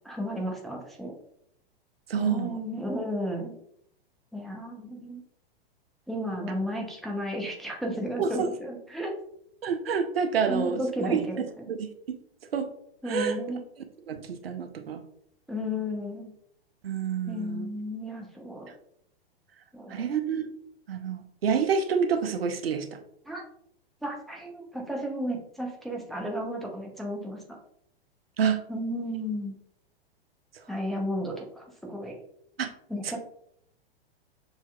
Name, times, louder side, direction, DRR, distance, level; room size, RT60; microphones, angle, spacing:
voice 1, 0.0-1.2 2.2-3.5 4.3-5.2 6.1-9.1 10.5-11.4 13.0-13.6 15.5-16.3 17.3-18.7 19.7-20.0 23.3-23.4 24.0-27.4 28.7-29.5 30.7-32.2 32.9-33.2, equal, ahead, -1 dB, 0.7 m, -33 dB
voice 2, 2.1-2.5 8.2-8.5 9.6-10.8 11.1-11.2 11.7-11.9 12.5-12.7 13.1-13.3 14.1-15.0 16.8-17.7 19.9-20.5 20.9-22.9 28.4-28.6 32.6-32.7, right 6 dB, 75° right, 7 dB, 0.6 m, -27 dB
6.5 x 2.8 x 2.3 m, 0.70 s
figure-of-eight pair, 105°, 30 cm